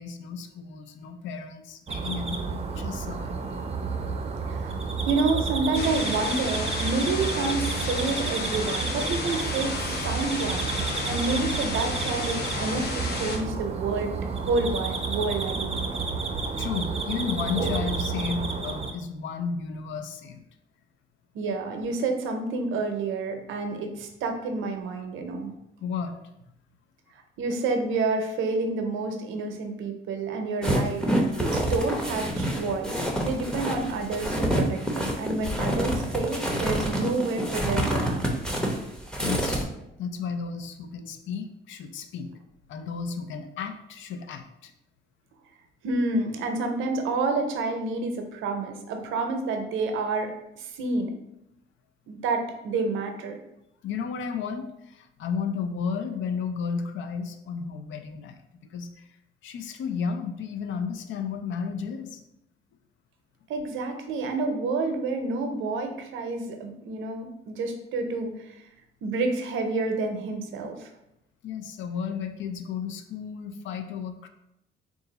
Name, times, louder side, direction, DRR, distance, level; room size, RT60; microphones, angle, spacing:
voice 1, 0.0-3.7 16.5-20.4 25.8-26.2 39.2-39.7 40.0-42.3 42.7-44.7 53.8-58.4 58.7-59.1 59.4-62.2 71.4-74.3, left 6 dB, 70° left, 8 dB, 0.5 m, -33 dB
sound 1, 1.9-18.9, right 4 dB, 30° right, 0.5 m, -31 dB
voice 2, 4.5-10.7 11.0-15.9 21.3-25.5 27.1-31.0 31.4-38.3 45.8-51.1 52.1-53.4 63.5-68.6 69.0-70.9, right 3 dB, 85° right, 5 dB, 0.6 m, -29 dB
sound 2, 5.7-13.4, left 3 dB, 55° left, 0.9 m, -32 dB
sound 3, 30.6-39.6, equal, 5° left, 0.7 m, -27 dB
3.8 x 2.4 x 3.9 m, 0.82 s
cardioid pair, 90°, 20 cm